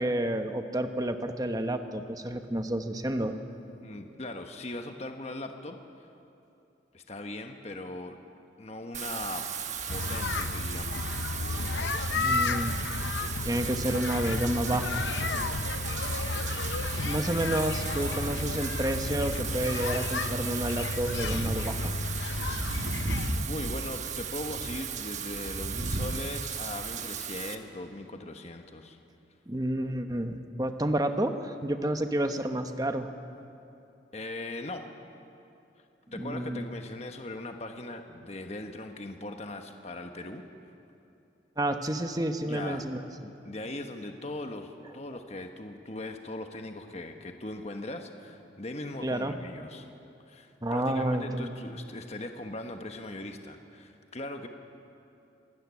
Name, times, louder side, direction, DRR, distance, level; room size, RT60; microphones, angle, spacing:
voice 1, 0.0-3.4 12.2-12.8 13.4-15.1 17.0-21.9 29.5-33.1 36.2-36.7 41.6-43.0 49.0-49.3 50.6-51.5, right 1 dB, 20° right, 7 dB, 1.1 m, -30 dB
voice 2, 3.8-5.8 6.9-8.2 8.6-9.5 9.9-11.2 23.4-29.0 34.1-34.8 36.1-40.4 42.4-42.9 43.4-49.9 50.3-54.5, left 2 dB, 35° left, 5 dB, 1.2 m, -39 dB
Wind / Rain, 8.9-27.6, right 5 dB, 40° right, 1.1 m, -35 dB
sound 1, 9.9-23.4, left 3 dB, 85° left, 0.8 m, -32 dB
25.5 x 13.5 x 9.7 m, 2.7 s
head